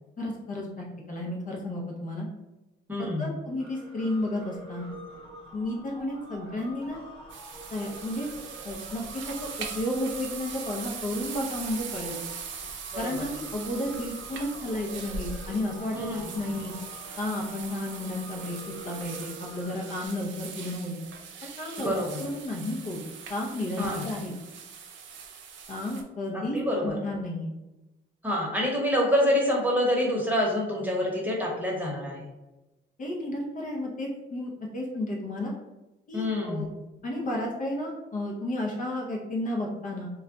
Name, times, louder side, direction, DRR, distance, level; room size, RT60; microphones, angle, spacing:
voice 1, 0.2-2.3 3.0-4.9 5.5-7.0 7.7-8.3 8.6-12.2 13.0-16.7 17.2-21.0 21.4-21.9 22.2-23.0 23.3-24.3 25.7-26.6 26.8-27.5 33.0-35.5 36.1-36.7 37.0-40.1, left 1 dB, 40° left, -2 dB, 0.7 m, -32 dB
voice 2, 2.9-3.3 12.9-13.3 15.9-16.3 21.8-22.2 23.8-24.0 26.3-27.0 28.2-32.3 36.1-36.6, left 1 dB, 10° right, -2 dB, 1.0 m, -27 dB
sound 1, 3.6-20.1, right 1 dB, 25° left, 1.1 m, -47 dB
sound 2, 7.3-26.0, right 6 dB, 70° right, 0.5 m, -41 dB
2.3 x 2.1 x 3.8 m, 1.0 s
cardioid pair, 90°, 20 cm